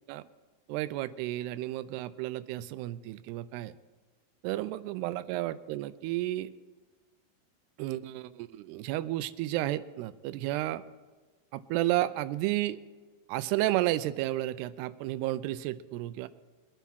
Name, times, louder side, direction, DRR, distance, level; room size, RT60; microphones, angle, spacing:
voice 1, 0.7-3.8 4.4-6.5 7.8-10.8 11.5-12.8 13.3-16.3, right 15 dB, 90° right, 15 dB, 2.6 m, -32 dB
23.0 x 9.2 x 4.7 m, 1.3 s
omnidirectional pair, 4.6 m